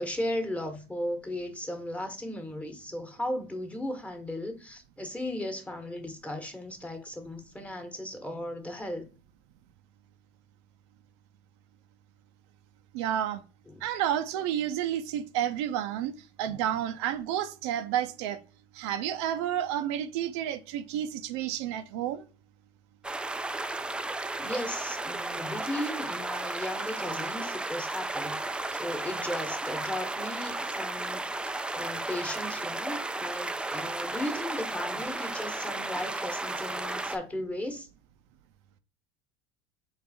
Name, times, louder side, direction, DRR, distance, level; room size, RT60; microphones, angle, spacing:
voice 1, 0.0-9.1 13.7-13.8 16.5-16.6 24.4-28.4 28.7-31.3 31.7-37.9, left 1 dB, 10° left, 1.2 m, -36 dB
voice 2, 12.9-13.4 13.8-18.4 18.7-22.2, right 10 dB, 75° right, 0.6 m, -30 dB
sound 1, 23.0-37.2, right 2 dB, 5° right, 0.3 m, -34 dB
3.8 x 3.3 x 4.1 m
supercardioid pair, 100°, 14 cm